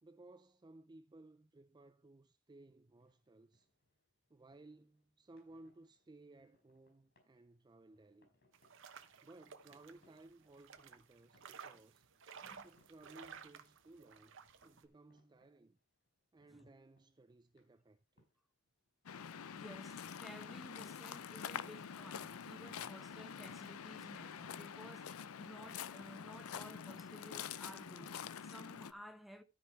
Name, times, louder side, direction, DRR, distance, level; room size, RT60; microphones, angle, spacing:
voice 1, 0.0-3.7 4.3-8.3 9.2-12.1 12.6-15.8 16.3-18.3, right 2 dB, 20° right, 0.4 m, -60 dB
sound 1, 2.6-21.8, left 2 dB, 50° left, 4.9 m, -79 dB
sound 2, 8.5-14.9, right 6 dB, 60° right, 1.1 m, -56 dB
voice 2, 12.4-12.7 16.5-16.7 19.5-29.4, equal, ahead, 0.9 m, -55 dB
Waves surf, 19.1-28.9, left 7 dB, 75° left, 0.5 m, -47 dB
13.0 x 5.3 x 4.4 m
head